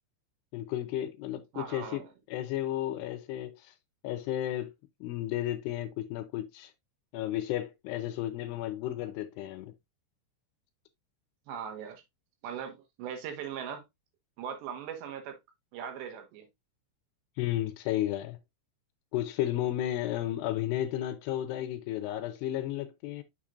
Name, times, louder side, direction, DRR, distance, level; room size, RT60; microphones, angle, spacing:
voice 1, 0.5-3.7 4.0-4.7 5.0-6.7 7.1-9.7 17.4-18.4 19.1-23.2, left 13 dB, 80° left, 2.5 m, -33 dB
voice 2, 1.5-2.1 11.5-12.0 12.4-13.8 14.4-15.4 15.7-16.5, right 8 dB, 80° right, 3.4 m, -39 dB
7.2 x 6.6 x 2.4 m
omnidirectional pair, 5.1 m